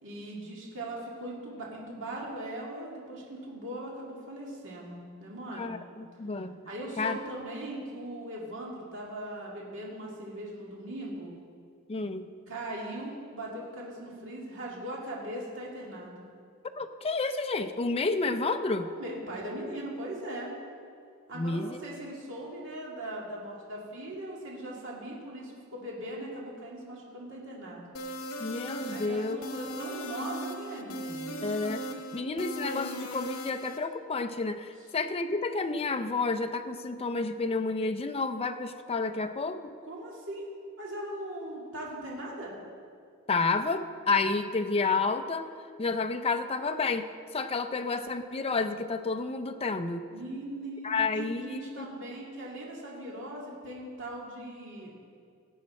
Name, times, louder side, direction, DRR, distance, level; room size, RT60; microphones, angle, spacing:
voice 1, 0.0-5.8 6.7-11.4 12.5-16.3 18.8-20.5 21.3-27.9 28.8-31.4 39.9-40.4 40.8-42.5 50.1-54.9, right 1 dB, 60° right, -3 dB, 2.3 m, -39 dB
voice 2, 5.5-6.6 7.0-7.2 11.9-12.3 16.8-18.9 21.3-21.8 28.4-29.4 31.4-31.8 32.1-39.6 43.3-45.5 45.8-50.0 50.8-51.9, left 3 dB, 25° left, 8 dB, 0.5 m, -30 dB
sound 1, 27.9-33.8, equal, 80° left, 1.1 m, -38 dB
17.5 x 8.8 x 4.3 m, 2.3 s
head